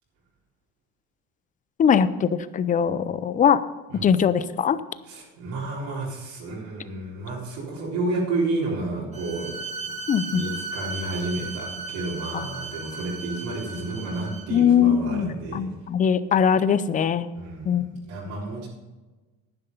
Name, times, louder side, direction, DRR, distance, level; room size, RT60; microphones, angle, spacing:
voice 1, 1.8-3.6 4.0-4.8 10.1-10.4 12.3-12.4 14.5-17.3 17.7-17.9, left 7 dB, 25° left, 15 dB, 0.5 m, -21 dB
voice 2, 5.1-9.9 10.3-15.7 17.4-18.7, right 2 dB, 75° right, -5 dB, 4.0 m, -31 dB
Bowed string instrument, 9.1-14.6, right 3 dB, 20° right, 1.6 m, -36 dB
10.5 x 10.0 x 5.4 m, 1.2 s
cardioid pair, 125°, 30 cm